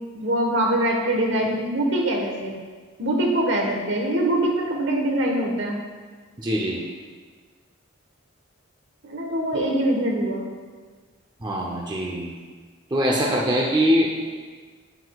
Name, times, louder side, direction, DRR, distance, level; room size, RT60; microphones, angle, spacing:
voice 1, 0.1-2.5 3.0-5.8 9.0-10.4, right 1 dB, 65° right, 0 dB, 1.3 m, -23 dB
voice 2, 6.4-6.8 9.5-9.6 11.4-12.3 12.9-14.1, equal, 20° right, -2 dB, 0.6 m, -22 dB
8.4 x 8.0 x 2.4 m, 1.5 s
head